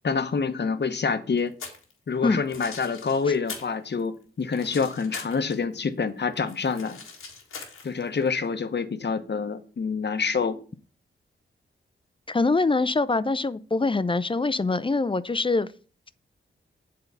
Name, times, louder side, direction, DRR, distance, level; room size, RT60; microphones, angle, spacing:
voice 1, 0.0-1.5 2.1-7.0 7.8-10.6, left 5 dB, 55° left, 1.0 m, -27 dB
sound 1, 1.4-1.9 2.3-3.7 4.0-5.7 6.1-8.3, left 5 dB, 90° left, 1.7 m, -41 dB
voice 2, 12.3-15.7, left 3 dB, 25° left, 0.6 m, -24 dB
8.1 x 3.8 x 6.8 m
cardioid pair, 45°, 21 cm